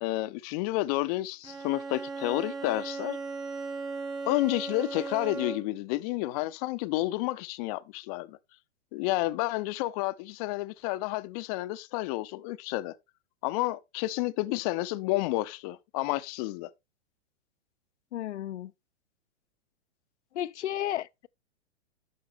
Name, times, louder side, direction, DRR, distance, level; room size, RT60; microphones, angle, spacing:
voice 1, 0.0-3.2 4.3-8.4 8.9-12.9 13.4-16.7, left 18 dB, 35° left, 0.5 m, -30 dB
Bowed string instrument, 1.4-5.9, right 4 dB, 10° right, 0.6 m, -37 dB
voice 2, 18.1-18.7 20.3-21.3, left 12 dB, 85° left, 0.5 m, -33 dB
10.5 x 6.2 x 3.3 m
hypercardioid pair, 125°, 34 cm